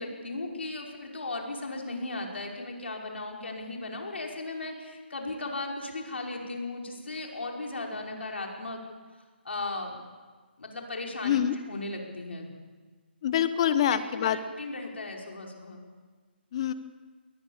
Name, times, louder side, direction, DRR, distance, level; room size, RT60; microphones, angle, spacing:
voice 1, 0.0-8.8 9.4-10.0 10.6-11.4 11.7-12.5 13.6-15.8, left 2 dB, 80° left, 0 dB, 5.4 m, -36 dB
voice 2, 11.2-11.6 13.2-14.4 16.5-16.7, left 10 dB, 30° left, 14 dB, 1.0 m, -25 dB
21.5 x 19.0 x 7.3 m, 1.4 s
hypercardioid pair, 165°, 6 cm